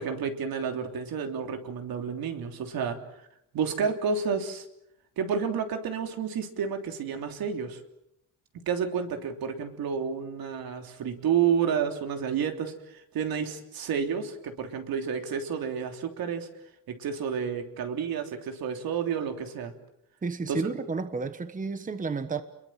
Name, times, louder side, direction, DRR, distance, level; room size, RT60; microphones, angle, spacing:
voice 1, 0.0-3.0 3.5-4.6 5.2-7.8 8.5-16.5 16.9-19.7 20.5-20.7, right 7 dB, 80° right, 3.4 m, -30 dB
voice 2, 20.2-22.4, right 4 dB, 20° right, 1.3 m, -31 dB
29.5 x 22.5 x 7.6 m
cardioid pair, 145°, 35 cm